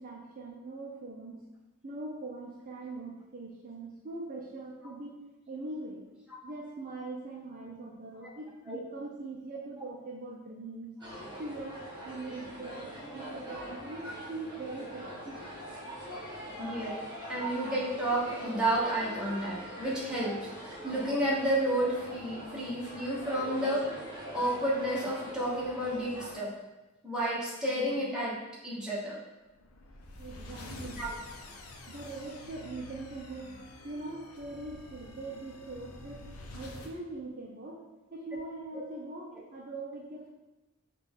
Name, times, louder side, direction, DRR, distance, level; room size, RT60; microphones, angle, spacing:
voice 1, 0.0-1.4 1.8-5.2 5.5-6.0 6.4-10.9 11.4-15.1 30.2-31.0 31.9-33.6 33.8-36.2 36.5-37.8 38.1-40.3, right 2 dB, 40° right, -3 dB, 0.5 m, -42 dB
sound 1, 11.0-26.4, equal, 20° right, 1.2 m, -43 dB
voice 2, 16.6-17.0 17.3-23.9 24.3-26.5 27.0-29.2 30.7-31.1, right 1 dB, 5° right, -7 dB, 1.1 m, -31 dB
sound 2, 29.5-37.0, left 2 dB, 70° left, 0.6 m, -48 dB
5.8 x 2.4 x 3.6 m, 1.1 s
head